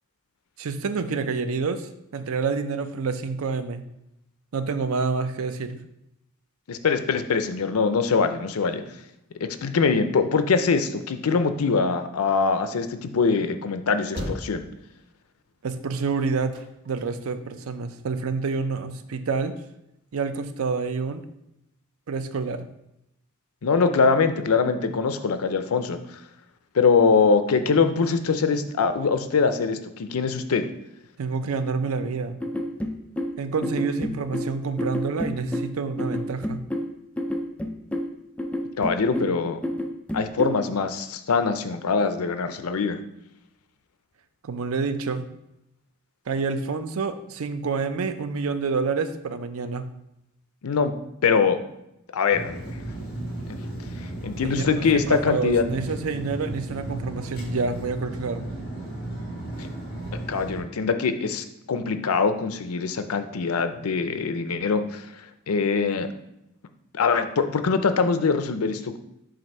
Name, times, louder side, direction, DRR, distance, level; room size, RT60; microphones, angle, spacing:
voice 1, 0.6-3.8 4.5-5.8 15.6-19.5 20.1-21.2 22.1-22.7 31.2-32.4 33.4-36.6 44.4-45.2 46.3-49.9 54.4-58.5, right 4 dB, 75° right, 10 dB, 0.5 m, -28 dB
voice 2, 6.7-8.8 9.4-14.6 23.6-26.0 26.7-30.7 38.8-39.6 40.1-43.0 50.6-50.9 51.2-51.6 52.1-52.7 53.5-53.6 54.2-55.6 60.3-65.1 65.5-66.1 66.9-69.0, left 5 dB, 90° left, 9 dB, 0.5 m, -23 dB
sound 1, 14.0-17.7 18.2-19.1, equal, 55° right, 1.2 m, -38 dB
sound 2, 32.4-40.6, left 1 dB, 5° left, 0.4 m, -30 dB
sound 3, 52.3-60.6, right 1 dB, 45° left, 1.6 m, -34 dB
7.6 x 2.6 x 5.4 m, 0.82 s
head